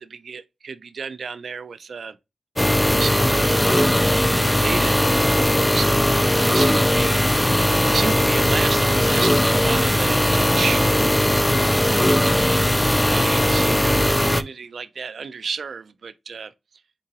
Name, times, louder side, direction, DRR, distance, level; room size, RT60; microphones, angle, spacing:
voice 1, 0.0-2.2 2.9-4.0 4.3-6.1 6.4-10.8 12.8-16.5, right 5 dB, 65° right, 0.4 m, -32 dB
sound 1, 2.6-14.4, left 1 dB, 10° left, 0.4 m, -19 dB
3.7 x 3.7 x 2.8 m
cardioid pair, 70°, 0 cm